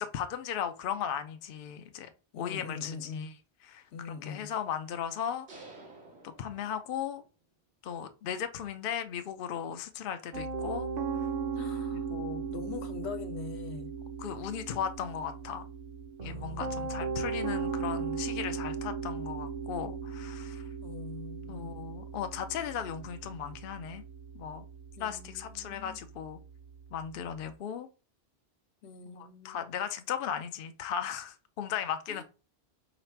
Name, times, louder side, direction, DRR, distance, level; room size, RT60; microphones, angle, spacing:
voice 1, 0.0-2.1 2.4-3.3 3.7-3.8 4.2-5.5 6.2-7.2 7.8-10.9 11.9-12.5 14.2-15.6 16.2-20.6 21.5-24.0 24.3-24.7 25.0-26.4 26.9-27.9 29.1-32.2, left 8 dB, 60° left, 0.7 m, -36 dB
voice 2, 2.3-3.3 3.9-4.5 11.6-12.1 12.5-13.9 16.2-16.9 20.8-21.7 25.0-26.0 28.8-29.8 32.1-32.2, left 5 dB, 85° left, 1.0 m, -43 dB
sound 1, 5.5-7.3, right 2 dB, 80° right, 1.8 m, -51 dB
Piano, 10.3-27.4, right 5 dB, 45° right, 0.8 m, -37 dB
4.9 x 2.4 x 4.5 m
omnidirectional pair, 1.1 m